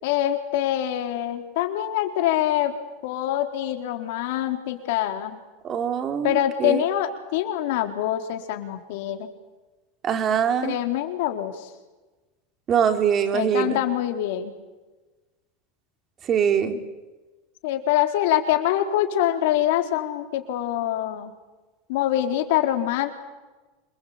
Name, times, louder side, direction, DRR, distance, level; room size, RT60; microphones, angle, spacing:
voice 1, 0.0-2.7 3.0-5.4 6.2-9.3 10.6-11.7 13.3-14.5 16.7-16.8 17.6-21.3 21.9-23.1, left 12 dB, 70° left, 6 dB, 4.1 m, -25 dB
voice 2, 5.6-6.8 10.0-10.8 12.7-13.8 16.3-16.8, right 8 dB, 35° right, 7 dB, 4.2 m, -23 dB
27.5 x 21.5 x 8.9 m, 1.2 s
hypercardioid pair, 105°, 0 cm